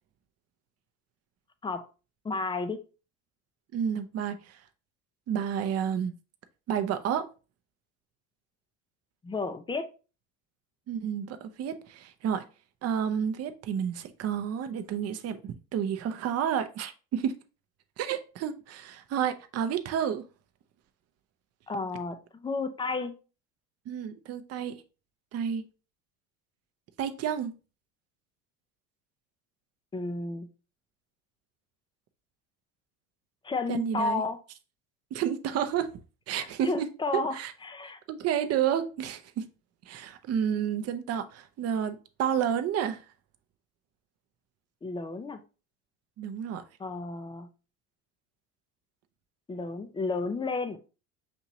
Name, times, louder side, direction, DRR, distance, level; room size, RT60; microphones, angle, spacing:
voice 1, 2.2-2.8 9.2-9.9 21.7-23.1 29.9-30.5 33.4-34.4 36.4-38.0 44.8-45.4 46.8-47.5 49.5-50.8, left 3 dB, 10° left, 0.4 m, -32 dB
voice 2, 3.7-4.6 5.3-6.1 6.7-7.3 10.9-12.4 12.8-17.3 18.0-20.2 23.9-24.8 25.3-25.6 27.0-27.5 33.7-34.2 35.1-35.9 36.3-36.9 37.3-37.5 38.1-39.5 39.9-43.0 46.2-46.6, right 8 dB, 35° right, 0.6 m, -30 dB
6.1 x 2.8 x 2.7 m
hypercardioid pair, 80°, 43 cm